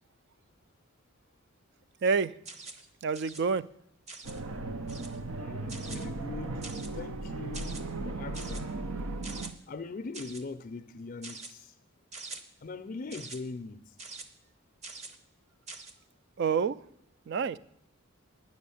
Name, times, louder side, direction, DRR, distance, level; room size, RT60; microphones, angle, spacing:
voice 1, 2.0-2.3 3.0-3.6 4.9-5.0 16.4-16.8 17.3-17.6, right 5 dB, 55° right, 0.4 m, -28 dB
sound 1, 2.5-2.9 3.1-3.4 4.1-4.4 4.9-5.2 5.7-6.1 6.6-7.0 7.5-7.8 8.3-8.6 9.2-9.5 10.1-10.4 11.2-11.5 12.1-12.4 13.1-13.4 14.0-14.2 14.8-15.2 15.7-15.9, right 3 dB, 35° right, 0.8 m, -44 dB
sound 2, 4.2-9.5, right 2 dB, 80° right, 0.8 m, -36 dB
voice 2, 5.4-6.7 6.9-8.7 9.7-11.7 12.6-13.9, left 3 dB, 40° left, 0.4 m, -41 dB
9.6 x 6.4 x 8.4 m
head